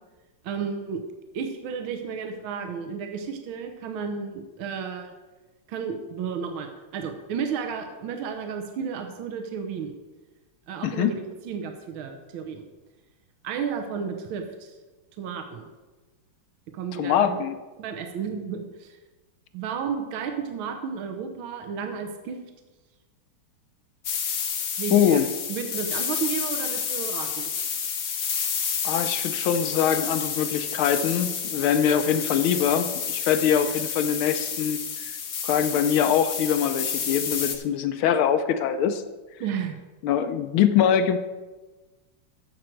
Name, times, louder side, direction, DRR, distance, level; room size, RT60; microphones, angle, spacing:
voice 1, 0.4-1.0 1.3-5.1 5.7-9.9 10.7-12.6 13.4-14.7 15.2-15.7 16.7-17.4 17.8-19.0 19.5-22.4 24.8-25.2 25.5-27.5 39.4-39.8, right 6 dB, 70° right, 5 dB, 1.7 m, -32 dB
voice 2, 16.9-17.5 24.9-25.3 28.8-35.1 35.4-39.0 40.0-41.2, left 8 dB, 75° left, 9 dB, 1.5 m, -23 dB
sound 1, 24.0-37.6, left 7 dB, 55° left, 1.1 m, -30 dB
14.0 x 6.3 x 4.5 m, 1.2 s
omnidirectional pair, 2.4 m